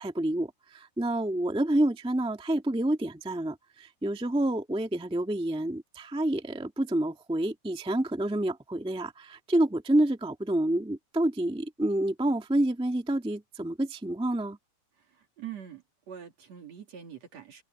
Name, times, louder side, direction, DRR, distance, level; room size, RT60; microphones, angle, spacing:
voice 1, 0.0-14.6, right 1 dB, ahead, 1.3 m, -28 dB
voice 2, 15.1-17.6, right 9 dB, 60° right, 4.1 m, -44 dB
omnidirectional pair, 3.4 m